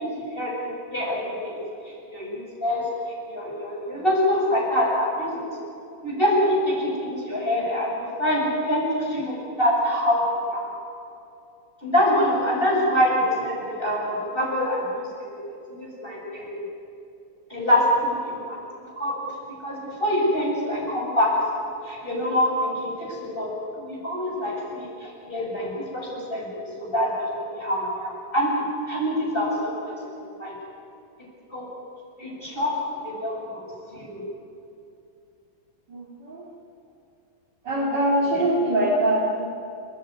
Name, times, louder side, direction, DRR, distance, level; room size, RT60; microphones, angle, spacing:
voice 1, 0.0-2.9 3.3-5.5 6.0-10.7 11.8-15.3 15.7-16.6 17.5-18.6 19.0-19.1 19.6-23.5 23.8-30.5 31.5-31.7 32.2-32.7 33.0-33.6 33.9-34.2, equal, 25° left, -3 dB, 7.9 m, -25 dB
voice 2, 35.9-36.5 37.7-39.4, right 1 dB, 55° right, -4 dB, 3.5 m, -23 dB
30.0 x 15.0 x 9.7 m, 2.7 s
omnidirectional pair, 2.3 m